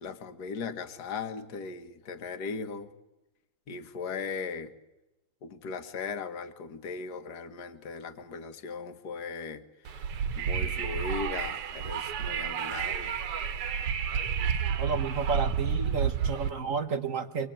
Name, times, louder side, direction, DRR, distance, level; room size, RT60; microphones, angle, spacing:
voice 1, 0.0-2.9 3.7-4.7 5.4-10.0 10.4-13.2, left 5 dB, 50° left, 9 dB, 1.8 m, -38 dB
Wind, 9.8-16.5, right 7 dB, 85° right, 2.2 m, -30 dB
voice 2, 14.8-17.5, right 5 dB, 45° right, 8 dB, 1.2 m, -31 dB
25.5 x 20.5 x 8.9 m, 0.97 s
omnidirectional pair, 2.4 m